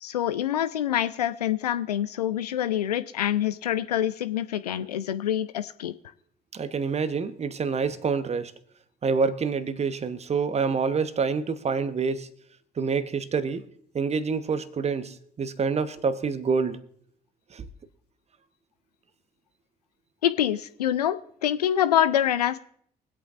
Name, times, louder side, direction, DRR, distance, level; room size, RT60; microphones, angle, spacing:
voice 1, 0.0-5.9 20.2-21.2 21.4-22.6, left 11 dB, 80° left, 0.5 m, -26 dB
voice 2, 6.5-8.5 9.0-12.3 12.8-13.6 13.9-16.8 17.5-17.7, right 5 dB, 35° right, 1.0 m, -27 dB
24.0 x 8.4 x 2.5 m
figure-of-eight pair, 45°, 20 cm